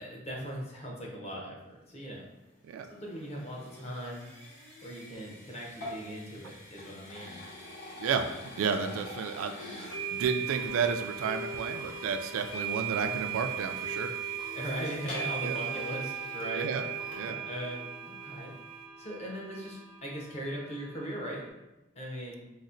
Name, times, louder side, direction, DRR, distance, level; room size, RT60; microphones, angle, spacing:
voice 1, 0.0-2.3 2.9-4.3 4.8-7.4 14.5-16.7 17.2-18.5 19.0-21.4 22.0-22.4, equal, 30° left, -2 dB, 0.6 m, -39 dB
sound 1, 2.3-17.5, left 1 dB, 65° left, 1.3 m, -48 dB
voice 2, 8.6-14.1 15.4-15.6 16.5-16.8 17.1-17.4, right 6 dB, 80° right, 7 dB, 0.3 m, -32 dB
sound 2, 9.0-9.1 9.9-21.5, right 8 dB, 90° left, 0.7 m, -38 dB
4.0 x 2.0 x 2.5 m, 0.99 s
head